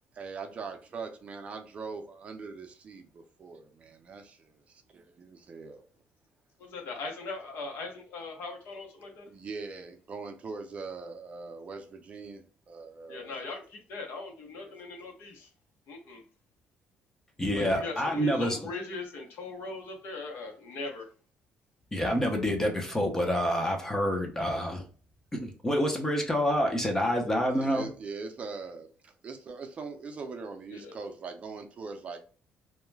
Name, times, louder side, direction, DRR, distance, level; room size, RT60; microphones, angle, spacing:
voice 1, 0.2-5.8 9.3-13.4 14.5-14.8 27.5-32.2, right 4 dB, 35° right, 0.5 m, -42 dB
voice 2, 6.7-9.2 13.1-15.5 15.9-16.2 17.5-21.1 30.7-30.9, left 3 dB, 70° left, 0.8 m, -40 dB
voice 3, 17.4-18.7 21.9-24.8 25.3-27.9, equal, 15° left, 0.6 m, -27 dB
2.3 x 2.1 x 3.2 m
cardioid pair, 125°, 4 cm